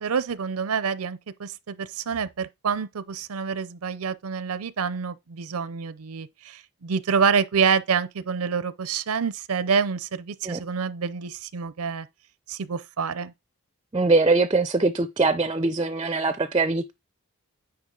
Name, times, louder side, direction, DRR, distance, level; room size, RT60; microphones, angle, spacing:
voice 1, 0.0-12.1 12.5-13.3, right 6 dB, 80° right, 0.6 m, -27 dB
voice 2, 13.9-16.9, right 3 dB, 20° right, 0.4 m, -22 dB
9.5 x 4.9 x 3.8 m
head